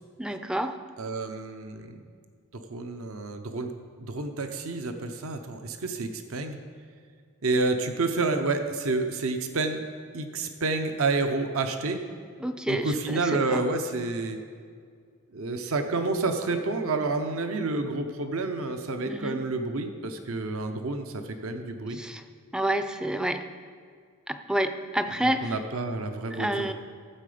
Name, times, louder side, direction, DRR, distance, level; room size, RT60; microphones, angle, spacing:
voice 1, 0.2-0.8 12.4-13.2 13.5-13.6 19.1-19.4 21.9-22.2 22.5-23.4 24.3-25.5 26.3-26.7, right 1 dB, 5° right, 8 dB, 0.4 m, -29 dB
voice 2, 1.0-2.0 2.5-3.7 4.0-6.6 7.4-9.8 10.1-12.0 12.7-14.4 15.3-22.0 25.2-26.7, right 3 dB, 70° right, 7 dB, 0.8 m, -29 dB
14.5 x 7.7 x 5.0 m, 2.1 s
head